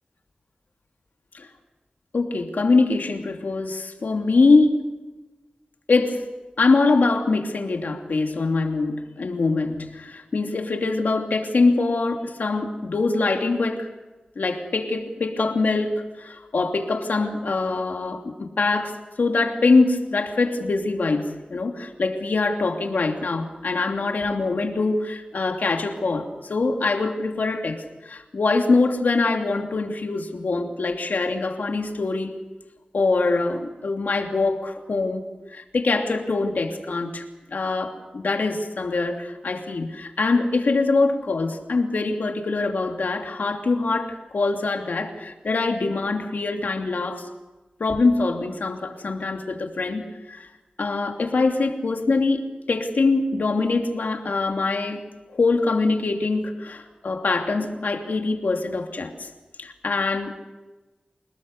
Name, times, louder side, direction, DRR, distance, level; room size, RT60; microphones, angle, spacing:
voice 1, 2.1-4.7 5.9-6.3 6.6-13.9 14.4-32.3 32.9-35.2 35.5-37.2 37.5-47.3 47.8-50.5 50.8-55.1 55.3-59.3 59.6-60.4, left 3 dB, 85° left, 3 dB, 2.9 m, -23 dB
28.0 x 19.5 x 6.7 m, 1.2 s
wide cardioid pair, 70°, 3 cm